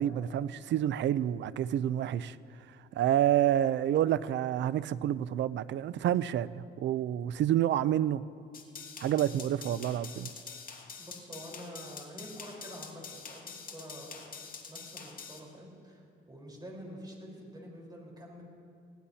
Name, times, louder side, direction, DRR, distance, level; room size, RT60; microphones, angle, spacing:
voice 1, 0.0-2.4 2.9-8.3 9.0-10.3, right 11 dB, 65° right, 0.5 m, -28 dB
sound 1, 8.5-15.4, left 5 dB, 45° left, 2.0 m, -46 dB
voice 2, 11.0-14.3 14.7-18.4, equal, 20° right, 4.2 m, -47 dB
20.5 x 17.0 x 2.8 m
cardioid pair, 90°, 20 cm